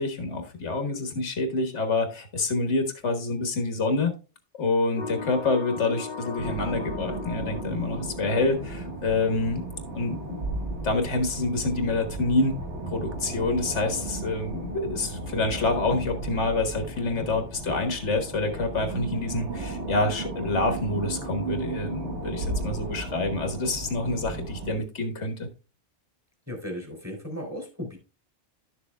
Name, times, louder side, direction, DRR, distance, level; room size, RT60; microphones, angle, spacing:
voice 1, 0.0-4.1 4.6-9.6 9.9-10.4 10.8-12.6 12.9-25.5, left 3 dB, 90° left, 6 dB, 1.7 m, -27 dB
sound 1, 5.0-8.8, left 5 dB, 50° left, 0.8 m, -37 dB
sound 2, 6.4-24.8, right 2 dB, 80° right, 1.6 m, -35 dB
voice 2, 26.5-28.0, equal, 15° right, 1 dB, 3.0 m, -36 dB
11.5 x 6.9 x 2.3 m, 0.31 s
omnidirectional pair, 1.2 m